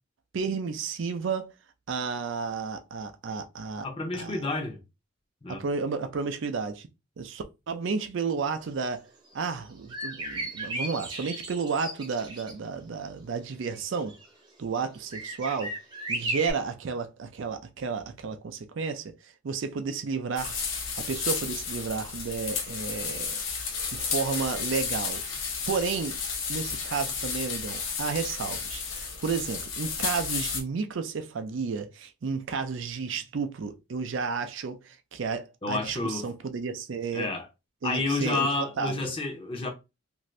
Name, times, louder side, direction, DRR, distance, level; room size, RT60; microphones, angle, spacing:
voice 1, 0.3-1.5 1.9-3.9 4.1-4.4 5.5-6.9 7.2-9.1 9.3-14.1 14.6-15.7 16.1-20.6 21.0-23.4 23.9-25.2 25.7-26.2 26.5-37.3 37.8-38.5 38.8-39.1, right 5 dB, 60° right, 0.4 m, -32 dB
voice 2, 3.8-4.8 5.4-5.6 35.6-36.3 37.1-37.5 37.8-39.7, left 3 dB, 25° left, 0.6 m, -30 dB
sound 1, 9.4-9.5 9.9-12.5 13.7-14.2 15.1-16.5, right 2 dB, 20° right, 0.6 m, -35 dB
sound 2, 20.4-30.6, left 5 dB, 60° left, 0.7 m, -32 dB
2.6 x 2.5 x 3.1 m
head